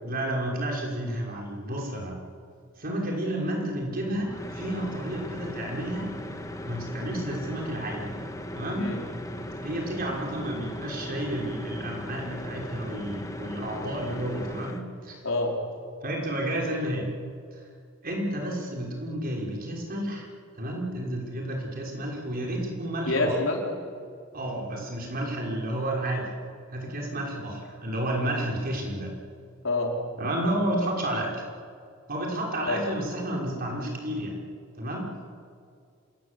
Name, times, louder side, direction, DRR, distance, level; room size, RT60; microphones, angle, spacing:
voice 1, 0.0-2.2 2.8-6.1 6.6-8.2 8.6-8.9 9.6-15.2 16.0-17.1 17.5-17.6 18.0-20.3 20.6-23.4 24.3-26.3 26.7-29.1 30.2-31.4 32.1-34.4 34.8-35.1, right 1 dB, 45° right, -1 dB, 5.8 m, -31 dB
sound 1, 4.1-14.8, left 1 dB, 15° left, 1.7 m, -38 dB
voice 2, 15.2-15.6 23.1-23.6 29.6-30.0 32.7-32.8, left 2 dB, 70° left, 0 dB, 4.8 m, -26 dB
27.0 x 20.5 x 8.5 m, 2.2 s
head